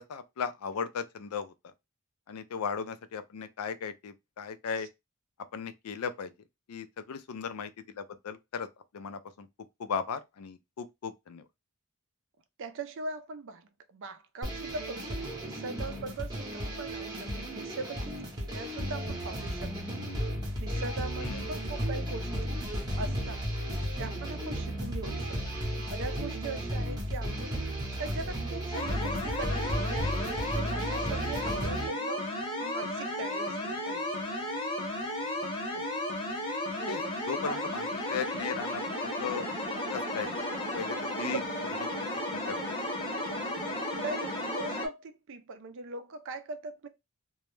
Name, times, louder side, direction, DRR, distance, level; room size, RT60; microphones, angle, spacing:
voice 1, 0.1-1.5 2.3-4.9 5.5-6.3 6.7-7.7 8.0-8.7 8.9-9.5 9.8-11.4 21.2-21.5 35.7-35.8 36.9-37.0 37.3-39.5 39.9-40.3 40.7-41.4 42.3-42.6, left 6 dB, 80° left, 0.4 m, -36 dB
voice 2, 12.6-20.0 20.6-23.5 24.0-25.4 25.9-32.3 32.6-34.2 36.7-37.2 37.4-37.7 41.2-41.4 41.7-41.8 42.7-42.8 43.9-46.9, right 3 dB, 60° right, 0.4 m, -41 dB
sound 1, 14.4-31.9, equal, 20° right, 0.7 m, -34 dB
sound 2, 28.7-44.9, left 1 dB, 25° left, 0.7 m, -34 dB
2.2 x 2.0 x 3.0 m
head